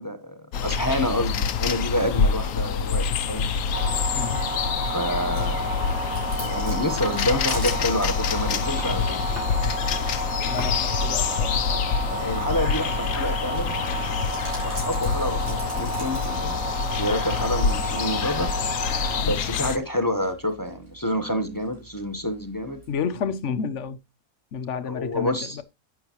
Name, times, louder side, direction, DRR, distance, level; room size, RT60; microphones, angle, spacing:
voice 1, 0.0-3.4 4.8-5.8 6.4-9.2 12.1-14.1 14.6-16.6 17.0-18.5 19.2-22.8 24.9-25.6, equal, 15° left, 1.0 m, -28 dB
sound 1, 0.5-19.8, left 6 dB, 85° left, 1.2 m, -26 dB
sound 2, 3.7-19.2, right 1 dB, 50° right, 6.0 m, -31 dB
Chewing mastication, 5.3-22.9, right 2 dB, 75° right, 5.6 m, -45 dB
voice 2, 10.4-12.0 19.2-19.4 22.9-24.0 24.5-25.6, left 6 dB, 60° left, 1.1 m, -31 dB
11.5 x 8.4 x 3.0 m
omnidirectional pair, 1.5 m